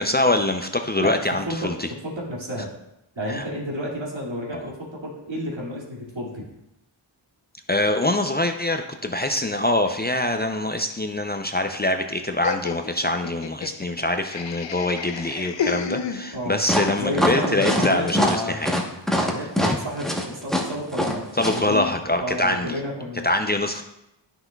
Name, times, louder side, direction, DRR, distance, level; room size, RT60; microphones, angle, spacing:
voice 1, 0.0-1.9 3.3-3.5 4.5-4.7 7.7-18.7 19.6-19.8 21.4-22.8 23.2-23.8, left 1 dB, 20° left, 5 dB, 0.5 m, -24 dB
voice 2, 1.0-1.7 2.0-2.7 3.2-6.4 16.3-16.6 17.0-18.6 19.1-21.9 22.2-23.3, equal, 75° right, -5 dB, 2.3 m, -31 dB
Laughter, 12.4-16.7, left 6 dB, 70° left, 0.6 m, -32 dB
sound 1, 16.7-21.6, equal, ahead, 1.0 m, -23 dB
10.5 x 5.8 x 2.3 m, 0.86 s
wide cardioid pair, 55°, 46 cm